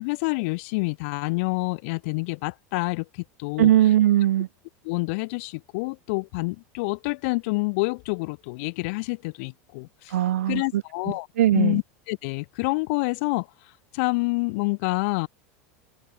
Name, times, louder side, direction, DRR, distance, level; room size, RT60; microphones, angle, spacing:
voice 1, 0.0-3.0 3.4-3.7 4.8-10.1 10.5-11.3 11.5-13.5 13.9-15.3, left 28 dB, 65° left, 1.2 m, -27 dB
voice 2, 3.6-4.5 10.1-10.8 11.4-11.8, right 12 dB, 90° right, 1.0 m, -19 dB
supercardioid pair, 115°, 7 cm